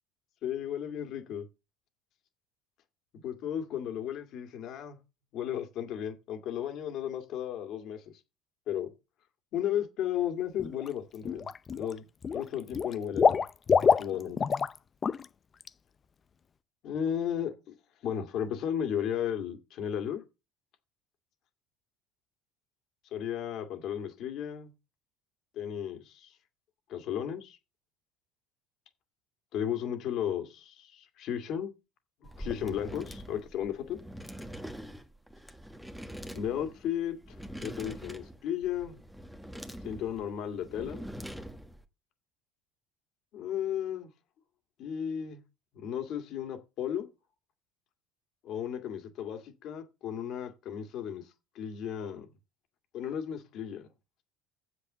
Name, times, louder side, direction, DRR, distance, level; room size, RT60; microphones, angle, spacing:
voice 1, 0.4-1.5 3.2-5.0 5.3-8.0 8.7-8.9 9.5-12.0 12.3-14.4 16.8-17.7 18.0-20.2 23.1-24.7 25.5-26.3 26.9-27.6 29.5-31.7 32.2-34.0 36.3-37.2 37.6-39.0 39.8-41.1 43.3-44.1 44.8-45.4 45.7-47.1 48.4-51.2 51.5-52.3 52.9-53.9, left 9 dB, 60° left, 2.3 m, -34 dB
Water / Liquid, 10.6-10.9 11.2-11.9 12.2-14.8 15.0-15.2 15.6-15.7, left 6 dB, 35° left, 0.6 m, -26 dB
sound 1, 32.2-41.8, equal, ahead, 1.4 m, -44 dB
7.6 x 6.8 x 6.8 m
hypercardioid pair, 75°, 0 cm